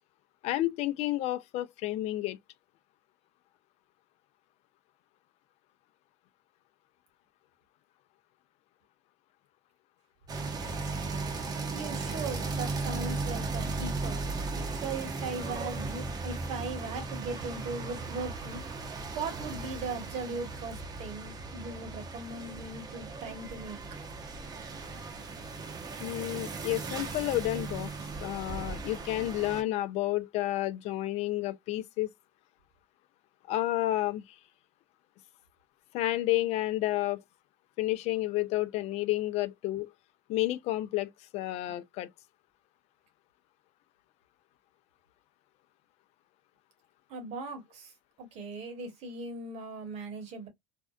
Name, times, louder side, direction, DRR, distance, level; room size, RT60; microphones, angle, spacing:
voice 1, 0.4-2.4 26.0-27.9 28.2-32.1 33.5-34.4 35.9-37.2 37.8-39.9 40.3-42.1, left 16 dB, 55° left, 0.4 m, -30 dB
sound 1, 10.3-29.6, right 3 dB, 30° right, 0.7 m, -37 dB
voice 2, 11.7-14.2 14.7-18.6 19.1-23.8 47.1-47.9 48.2-50.5, right 3 dB, 55° right, 1.1 m, -39 dB
2.6 x 2.1 x 2.3 m
supercardioid pair, 100°, 13 cm